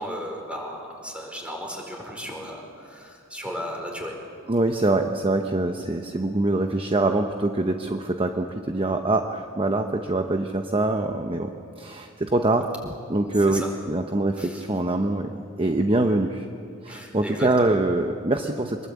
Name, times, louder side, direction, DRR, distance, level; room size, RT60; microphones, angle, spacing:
voice 1, 0.0-4.2 13.5-13.7 14.4-14.6 16.9-17.7, equal, 5° right, 1 dB, 4.6 m, -35 dB
voice 2, 4.5-11.5 11.8-16.5 16.8-18.9, right 2 dB, 25° right, 5 dB, 0.9 m, -24 dB
24.5 x 22.0 x 8.4 m, 2.4 s
head